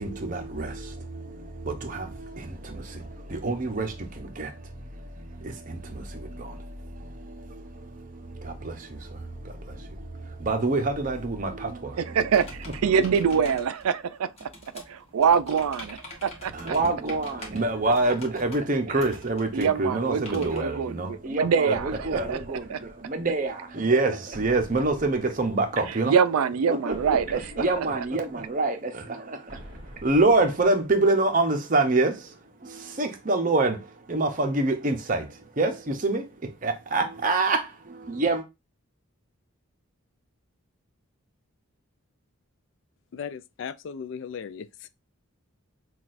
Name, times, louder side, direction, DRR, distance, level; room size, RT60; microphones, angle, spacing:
voice 1, 0.0-12.2 12.7-12.8 16.5-26.1 26.7-38.4, right 2 dB, 35° right, 0.7 m, -27 dB
voice 2, 12.0-14.5 14.7-16.7 19.5-22.4 22.7-22.8 26.1-27.9, right 6 dB, 90° right, 0.4 m, -25 dB
sound 1, 12.3-20.6, left 1 dB, 30° left, 1.2 m, -45 dB
sound 2, 21.7-23.5 24.3-26.0 26.9-28.7 29.5-31.3, equal, 20° right, 1.1 m, -46 dB
voice 3, 43.1-44.9, left 7 dB, 55° left, 0.3 m, -37 dB
5.9 x 2.4 x 2.5 m
head